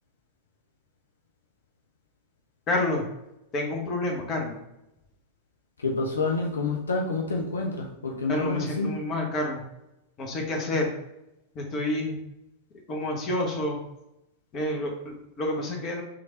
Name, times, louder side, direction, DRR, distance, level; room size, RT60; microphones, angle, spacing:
voice 1, 2.7-3.0 3.5-4.6 8.3-9.6 10.2-10.9 11.5-12.2 12.9-13.8 14.5-16.0, left 1 dB, 30° left, 1 dB, 0.9 m, -29 dB
voice 2, 5.8-8.9, left 3 dB, 70° left, 0 dB, 0.5 m, -28 dB
3.2 x 2.5 x 4.2 m, 0.89 s
figure-of-eight pair, 90°, 0 cm